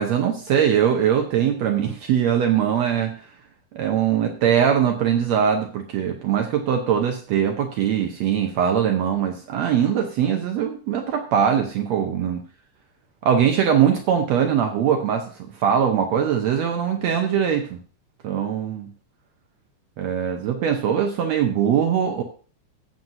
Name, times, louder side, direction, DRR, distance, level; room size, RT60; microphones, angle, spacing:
voice 1, 0.0-3.2 3.7-12.4 13.2-15.3 15.6-17.8 18.2-18.9 20.0-22.2, right 8 dB, 70° right, 4 dB, 1.9 m, -21 dB
15.0 x 7.8 x 2.7 m, 0.39 s
omnidirectional pair, 3.4 m